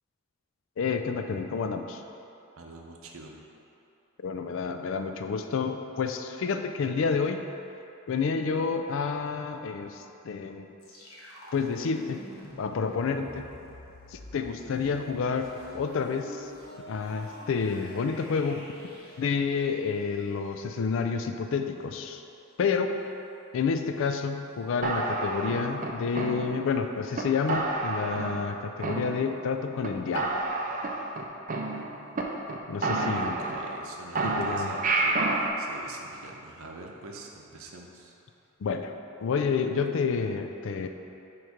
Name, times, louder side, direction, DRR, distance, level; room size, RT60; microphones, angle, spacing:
voice 1, 0.8-2.0 4.2-7.4 8.1-10.7 11.5-12.2 12.6-13.5 14.1-16.5 16.8-18.7 19.2-22.2 22.6-23.0 23.5-30.4 32.7-33.4 34.2-34.8 38.6-38.9 39.2-40.9, left 5 dB, 65° left, 7 dB, 0.4 m, -29 dB
voice 2, 2.6-3.3 32.9-38.2, right 2 dB, 90° right, 1 dB, 0.7 m, -44 dB
sound 1, 10.8-20.6, left 1 dB, 90° left, 1.2 m, -47 dB
sound 2, 24.8-26.8 27.2-27.3 27.5-28.5 28.8-29.5 29.8-29.9 30.2-32.2 32.5-32.6 32.8-33.9 34.2-35.5, right 3 dB, 40° right, 0.5 m, -29 dB
6.3 x 3.1 x 5.0 m, 2.8 s
head